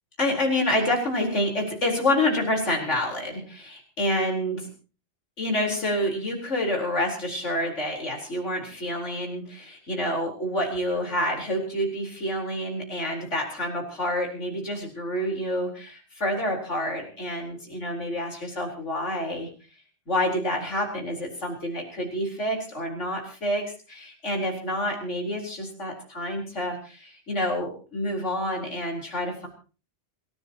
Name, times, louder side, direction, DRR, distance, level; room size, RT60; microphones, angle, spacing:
voice 1, 0.2-4.7 5.4-19.5 20.1-29.5, left 1 dB, 75° left, 0 dB, 4.7 m, -28 dB
27.0 x 16.0 x 3.0 m, 0.37 s
omnidirectional pair, 1.2 m